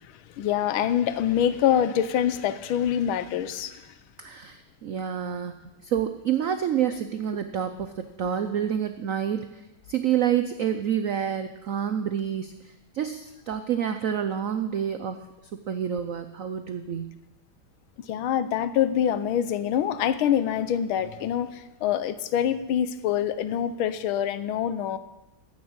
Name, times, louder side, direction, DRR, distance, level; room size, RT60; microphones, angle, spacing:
voice 1, 0.4-3.8 18.1-25.0, left 9 dB, 90° left, 13 dB, 1.6 m, -25 dB
voice 2, 4.2-15.3 15.7-17.2, right 9 dB, 90° right, 9 dB, 0.7 m, -28 dB
15.0 x 6.5 x 8.7 m, 1.0 s
omnidirectional pair, 2.2 m